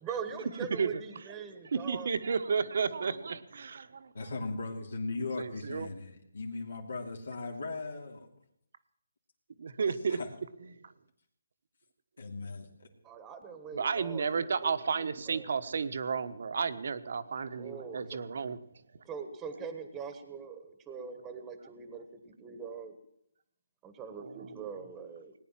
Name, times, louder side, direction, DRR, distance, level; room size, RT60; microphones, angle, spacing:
voice 1, 0.0-2.1 13.0-15.5 17.6-18.2 19.0-23.0 23.8-25.3, right 6 dB, 10° right, 8 dB, 1.3 m, -42 dB
voice 2, 1.7-4.1 5.4-5.9 9.6-10.2 10.8-10.9 13.7-18.6 24.2-24.7, right 5 dB, 55° right, 11 dB, 1.2 m, -32 dB
voice 3, 4.1-8.3 10.1-10.3 12.2-12.9, left 3 dB, 75° left, 1 dB, 2.9 m, -38 dB
19.0 x 9.9 x 7.4 m, 0.71 s
hypercardioid pair, 160°, 0 cm